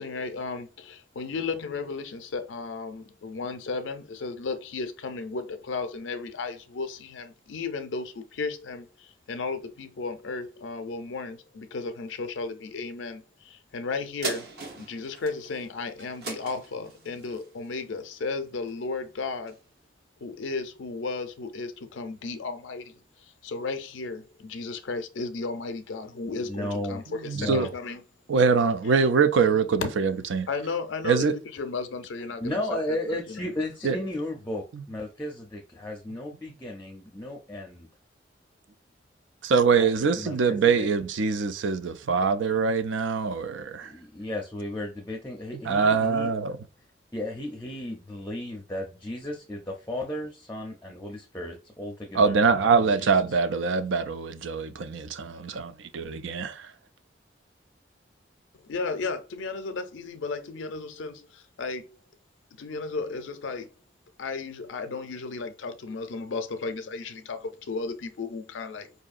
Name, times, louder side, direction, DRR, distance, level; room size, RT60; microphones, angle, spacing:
voice 1, 0.0-14.5 14.8-19.6 20.2-28.0 29.8-29.9 30.5-32.8 33.1-33.5 58.6-61.9 62.6-63.7 64.2-68.9, left 4 dB, 90° left, 0.5 m, -34 dB
sound 1, 14.2-19.0 19.5-19.6, right 3 dB, 55° right, 0.9 m, -39 dB
voice 2, 26.3-27.0 27.3-27.7 32.4-37.9 39.7-40.9 43.8-46.3 47.1-53.4, left 1 dB, 10° left, 0.5 m, -35 dB
voice 3, 27.2-27.7 28.3-30.5 31.0-31.3 33.8-34.0 39.4-43.9 45.6-46.6 52.1-56.7, right 5 dB, 85° right, 0.4 m, -24 dB
4.7 x 2.7 x 2.4 m
head